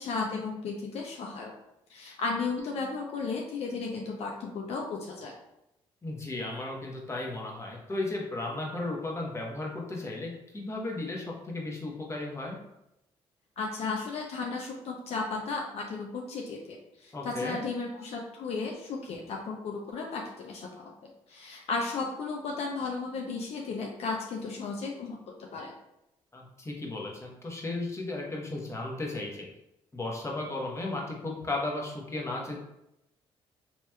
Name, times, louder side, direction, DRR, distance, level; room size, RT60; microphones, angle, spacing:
voice 1, 0.0-1.5 1.9-5.3 13.6-20.9 21.3-25.2 25.5-25.7, left 4 dB, 65° left, 0 dB, 0.5 m, -34 dB
voice 2, 6.0-12.6 17.1-17.6 26.3-29.5 29.9-32.7, left 2 dB, 25° left, -1 dB, 0.9 m, -35 dB
3.4 x 2.9 x 2.2 m, 0.85 s
supercardioid pair, 65°, 11 cm